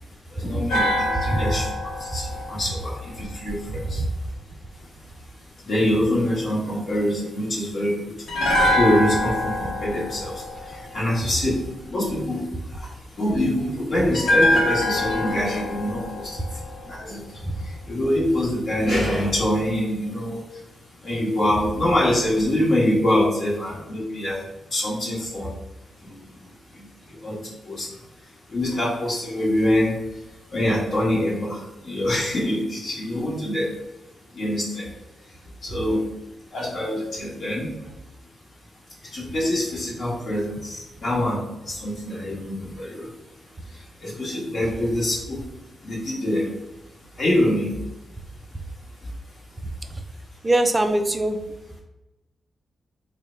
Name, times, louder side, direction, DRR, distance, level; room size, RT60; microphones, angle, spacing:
voice 1, 0.3-1.7 2.0-4.0 5.6-8.0 8.6-11.6 11.9-12.9 13.2-16.4 16.9-17.2 17.9-20.4 21.0-24.4 24.7-25.5 26.0-26.1 26.7-26.8 27.2-27.4 27.7-27.9 28.5-30.0 30.5-33.7 34.3-34.9 35.6-36.0 36.5-37.7 39.1-41.4 41.7-43.1 44.0-45.4 45.8-46.5 47.2-47.7, left 1 dB, 45° left, -5 dB, 1.1 m, -24 dB
sound 1, 0.7-3.9 8.3-11.5 14.1-17.3 17.6-17.8, left 1 dB, 90° left, 0.8 m, -25 dB
voice 2, 3.8-4.1 50.4-51.4, right 1 dB, 15° right, 7 dB, 0.3 m, -22 dB
3.3 x 2.1 x 4.3 m, 0.98 s
wide cardioid pair, 135°, 0 cm